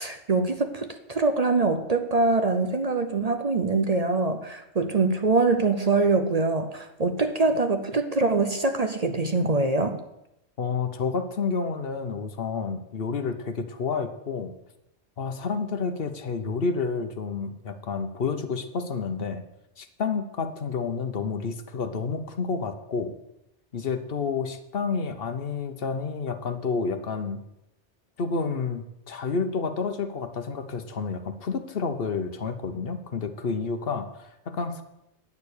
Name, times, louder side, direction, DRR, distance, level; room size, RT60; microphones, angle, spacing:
voice 1, 0.0-10.0, right 3 dB, 40° right, 7 dB, 0.7 m, -24 dB
voice 2, 10.6-14.5 15.2-19.4 19.8-23.2 23.7-27.4 28.2-34.8, left 5 dB, 60° left, 9 dB, 1.1 m, -30 dB
9.6 x 6.8 x 8.4 m, 0.86 s
omnidirectional pair, 1.2 m